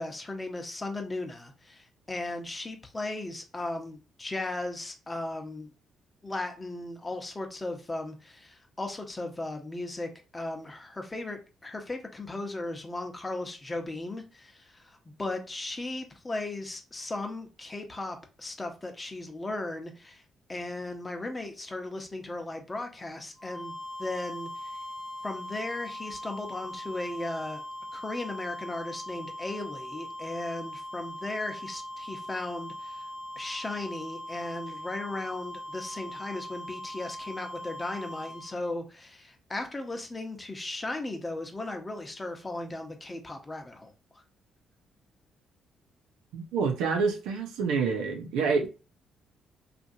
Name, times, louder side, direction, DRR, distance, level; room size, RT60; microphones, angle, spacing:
voice 1, 0.0-5.7 6.2-20.2 20.5-24.8 25.2-27.6 27.9-33.0 33.4-43.9, left 2 dB, 25° left, 0.9 m, -36 dB
sound 1, 23.4-38.7, left 1 dB, 15° right, 1.0 m, -40 dB
voice 2, 46.3-48.7, right 5 dB, 90° right, 0.6 m, -27 dB
2.8 x 2.5 x 2.7 m
cardioid pair, 75°, 0 cm